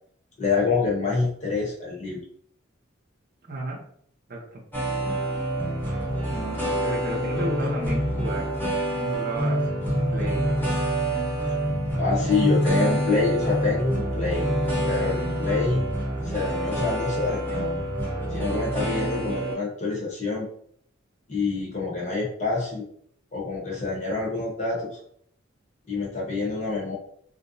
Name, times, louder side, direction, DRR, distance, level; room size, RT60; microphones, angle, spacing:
voice 1, 0.4-2.2 12.0-14.4 14.8-15.9 16.2-17.7 18.3-20.5 21.3-22.8 23.3-24.9 25.9-27.0, left 4 dB, 35° left, -4 dB, 0.9 m, -26 dB
voice 2, 3.4-3.8 4.3-4.6 6.3-8.5 9.0-10.7, right 1 dB, 50° right, -1 dB, 0.6 m, -34 dB
sound 1, 4.7-19.5, right 1 dB, 10° left, 0.8 m, -26 dB
2.6 x 2.0 x 2.6 m, 0.63 s
head